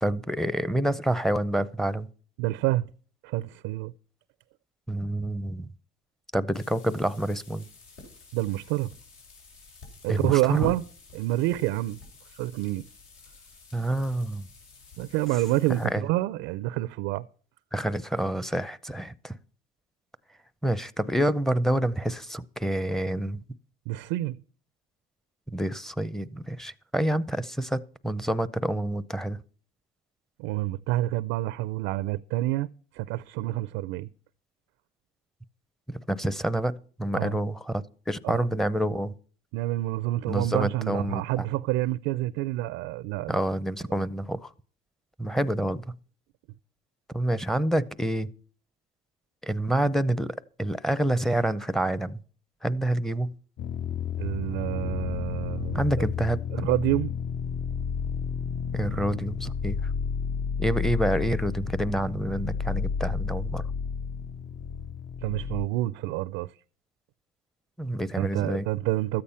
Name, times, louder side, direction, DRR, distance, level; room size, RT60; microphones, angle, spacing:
voice 1, 0.0-2.1 4.9-5.7 6.3-7.7 10.1-10.7 13.7-14.5 15.7-16.0 17.7-19.3 20.6-23.4 25.5-29.4 35.9-39.1 40.3-41.4 43.3-44.5 45.2-45.8 47.1-48.3 49.4-52.2 52.6-53.3 55.7-56.7 58.7-59.8 60.6-63.6 67.8-68.7, right 1 dB, ahead, 0.6 m, -28 dB
voice 2, 2.4-2.9 3.2-3.9 8.3-8.9 10.0-10.8 11.1-12.0 12.3-12.9 15.0-17.2 23.9-24.4 30.4-32.7 32.9-34.1 37.1-37.4 38.2-38.4 39.5-43.3 54.2-55.8 56.5-57.1 65.2-66.5 68.2-69.2, right 17 dB, 85° right, 0.5 m, -28 dB
sound 1, 6.5-15.9, left 3 dB, 80° left, 5.6 m, -47 dB
sound 2, 53.6-65.7, left 6 dB, 45° left, 0.6 m, -31 dB
13.5 x 8.7 x 5.6 m
cardioid pair, 110°, 21 cm